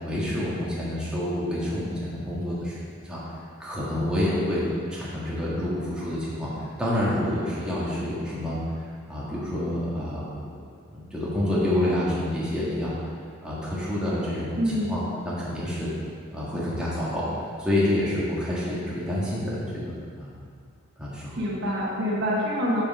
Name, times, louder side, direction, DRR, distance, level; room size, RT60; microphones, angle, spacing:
voice 1, 0.0-3.2 3.6-8.6 9.1-10.6 10.9-13.0 13.4-15.9 16.3-17.3 17.6-20.3 21.0-21.4, left 1 dB, 5° right, -8 dB, 1.6 m, -28 dB
voice 2, 14.6-15.0 21.4-22.8, equal, 55° right, -4 dB, 1.2 m, -26 dB
6.8 x 5.5 x 4.7 m, 2.2 s
head